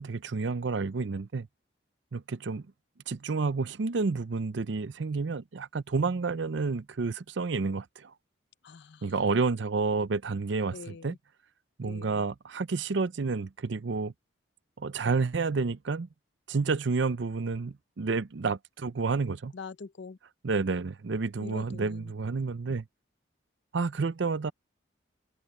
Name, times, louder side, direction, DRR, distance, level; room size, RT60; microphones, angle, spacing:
voice 1, 0.0-1.5 2.1-2.6 3.1-8.1 9.0-11.1 11.8-14.1 14.8-16.1 16.5-19.5 20.4-22.8 23.7-24.5, right 4 dB, 65° right, 0.5 m, -30 dB
voice 2, 8.6-9.1 10.7-11.2 11.8-12.2 19.5-20.2 21.4-22.1, left 4 dB, 60° left, 0.6 m, -44 dB
open air
head